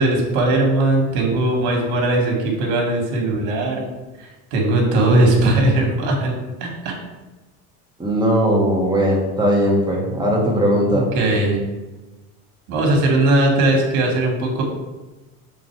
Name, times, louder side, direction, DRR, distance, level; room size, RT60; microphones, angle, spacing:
voice 1, 0.0-3.9 4.2-6.4 6.6-7.0 10.9-11.6 12.7-14.6, right 2 dB, 85° right, 1 dB, 1.9 m, -19 dB
voice 2, 8.0-11.1, equal, 10° right, -3 dB, 1.7 m, -18 dB
6.6 x 3.8 x 4.6 m, 1.2 s
cardioid pair, 125°, 39 cm